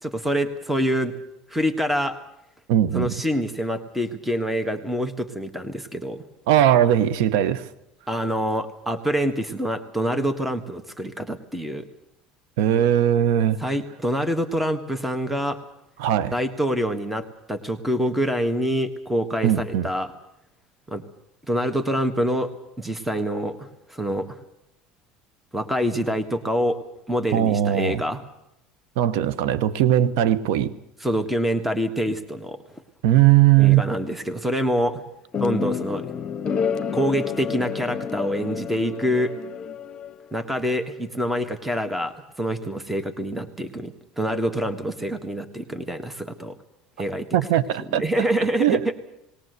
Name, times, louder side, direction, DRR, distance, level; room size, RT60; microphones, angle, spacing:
voice 1, 0.0-1.1 1.5-2.2 2.9-6.2 8.1-11.9 13.6-15.6 16.3-20.1 20.9-21.0 21.5-24.4 25.5-26.8 27.1-28.2 31.0-32.6 33.6-35.0 35.4-36.1 36.9-39.3 40.3-46.5 47.0-47.3 47.8-48.9, equal, 5° right, 1.6 m, -26 dB
voice 2, 2.7-3.1 6.5-7.7 12.6-13.6 16.0-16.3 19.4-19.9 27.3-28.0 29.0-30.7 33.0-33.8 47.3-48.0 48.6-48.9, right 11 dB, 80° right, 0.9 m, -19 dB
sound 1, 35.3-40.4, left 6 dB, 35° left, 1.1 m, -29 dB
20.0 x 18.0 x 8.1 m
supercardioid pair, 100°, 2 cm